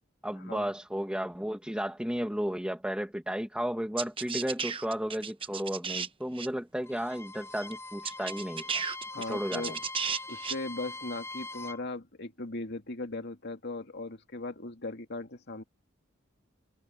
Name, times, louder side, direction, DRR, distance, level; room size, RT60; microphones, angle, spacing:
voice 1, 0.2-8.8 9.2-9.8, equal, 5° right, 1.8 m, -33 dB
sound 1, 4.0-6.1 6.3-6.5 7.7-7.8 8.0-10.5, right 6 dB, 25° right, 1.0 m, -34 dB
Bowed string instrument, 6.8-11.8, left 2 dB, 15° left, 5.9 m, -43 dB
voice 2, 9.1-9.8 10.3-15.6, left 2 dB, 60° left, 2.5 m, -38 dB
head